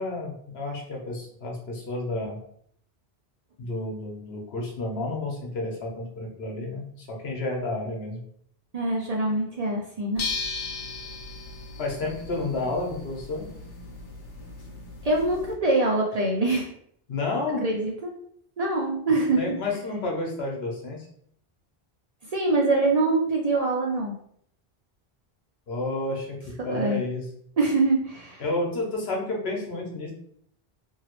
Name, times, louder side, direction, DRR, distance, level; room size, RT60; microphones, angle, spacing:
voice 1, 0.0-2.4 3.6-8.2 11.8-13.4 17.1-17.6 19.4-21.1 25.7-26.3 26.6-27.3 28.4-30.1, left 2 dB, 75° left, -1 dB, 1.1 m, -30 dB
voice 2, 8.7-10.3 15.0-16.7 17.6-18.1 18.6-19.4 22.3-24.1 26.7-27.0 27.6-28.4, right 2 dB, 50° right, -1 dB, 0.5 m, -24 dB
sound 1, 10.2-15.5, left 3 dB, 55° left, 0.7 m, -37 dB
2.9 x 2.7 x 2.9 m, 0.67 s
omnidirectional pair, 1.0 m